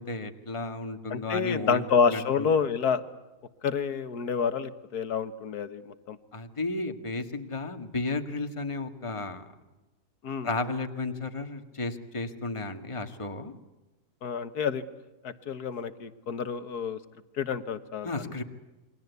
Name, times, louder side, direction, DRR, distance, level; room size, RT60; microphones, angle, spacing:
voice 1, 0.0-2.5 6.3-9.5 10.4-13.5 18.0-18.4, left 3 dB, 20° left, 7 dB, 1.8 m, -33 dB
voice 2, 1.1-3.0 3.6-6.2 10.2-10.5 14.2-14.8 15.2-17.0 17.4-18.4, left 6 dB, 75° left, 11 dB, 1.9 m, -28 dB
28.5 x 23.0 x 8.2 m, 1.1 s
omnidirectional pair, 1.7 m